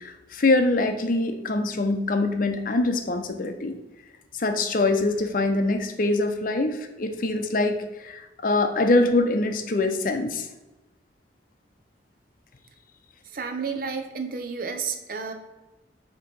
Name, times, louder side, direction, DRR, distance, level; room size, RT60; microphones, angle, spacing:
voice 1, 0.0-3.8 4.3-10.5, left 2 dB, 50° left, 6 dB, 0.6 m, -24 dB
voice 2, 13.2-15.3, right 5 dB, 55° right, 5 dB, 0.7 m, -31 dB
6.5 x 3.0 x 5.2 m, 1.0 s
head